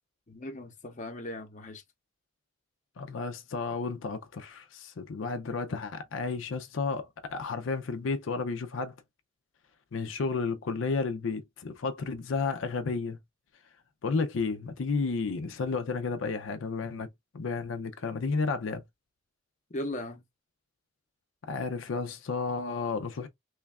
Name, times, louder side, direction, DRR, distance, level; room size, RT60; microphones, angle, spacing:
voice 1, 0.3-1.8 19.7-20.2, left 1 dB, 40° left, 0.8 m, -38 dB
voice 2, 3.0-7.0 7.3-8.9 9.9-13.2 14.0-17.1 17.3-18.8 21.5-23.3, left 4 dB, 85° left, 0.5 m, -32 dB
3.2 x 2.3 x 3.4 m
head